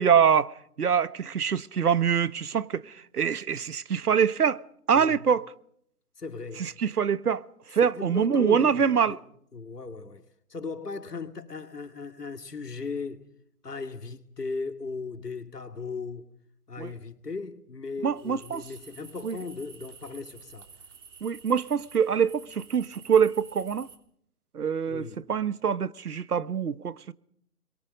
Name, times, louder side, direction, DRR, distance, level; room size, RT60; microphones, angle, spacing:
voice 1, 0.0-4.6 4.9-5.5 6.6-7.4 7.7-9.2 16.8-16.9 18.0-18.6 19.2-19.4 21.2-23.9 24.5-26.9, right 7 dB, 75° right, 1.2 m, -24 dB
voice 2, 6.2-6.7 7.8-9.2 9.5-10.2 10.5-13.3 13.6-16.3 16.7-20.7 24.9-25.2, left 4 dB, 90° left, 2.4 m, -37 dB
sound 1, 18.2-24.0, right 6 dB, 50° right, 3.4 m, -50 dB
29.5 x 22.5 x 5.3 m
figure-of-eight pair, 150°, 46 cm